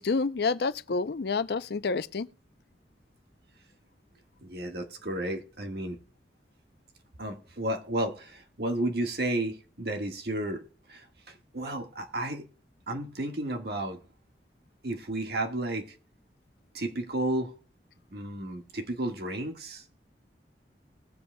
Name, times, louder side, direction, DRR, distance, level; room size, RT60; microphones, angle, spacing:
voice 1, 0.0-2.3, left 4 dB, 65° left, 0.5 m, -28 dB
voice 2, 4.4-6.0 7.2-12.5 12.9-14.0 14.8-15.9 16.7-17.5 18.1-19.8, right 1 dB, 60° right, 1.6 m, -32 dB
20.0 x 7.8 x 2.2 m
head